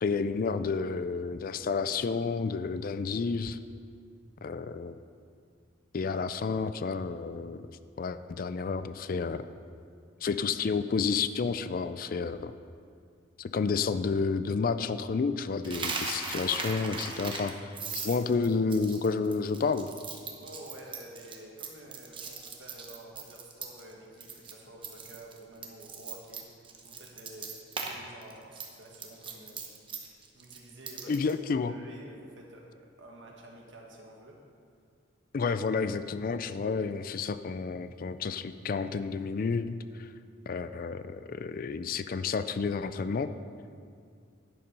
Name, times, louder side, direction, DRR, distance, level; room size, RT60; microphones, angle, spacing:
voice 1, 0.0-3.6 4.4-5.0 5.9-7.6 8.0-9.5 10.2-12.5 13.4-17.5 17.9-19.9 31.1-31.8 35.3-40.1 40.5-43.3, left 4 dB, 45° left, 12 dB, 0.4 m, -30 dB
Coin (dropping), 15.6-23.9 24.2-24.5 24.8-27.9 28.2-31.3, right 4 dB, 25° right, 0.9 m, -39 dB
voice 2, 20.4-29.8 30.3-31.1 31.6-34.4, right 1 dB, 75° right, -1 dB, 1.7 m, -50 dB
10.5 x 7.0 x 5.4 m, 2.3 s
head